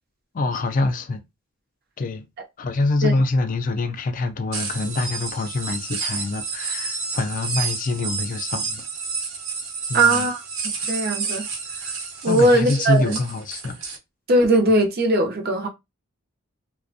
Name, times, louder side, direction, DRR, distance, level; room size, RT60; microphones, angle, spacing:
voice 1, 0.3-1.2 2.0-2.2 2.6-8.8 9.9-10.3 12.3-13.8, left 2 dB, 40° left, 0.4 m, -25 dB
sound 1, 4.5-14.0, right 5 dB, 75° right, 0.9 m, -30 dB
voice 2, 9.9-10.4 10.9-11.5 12.2-13.2 14.3-15.7, right 1 dB, 50° right, 0.6 m, -19 dB
2.4 x 2.1 x 2.5 m
head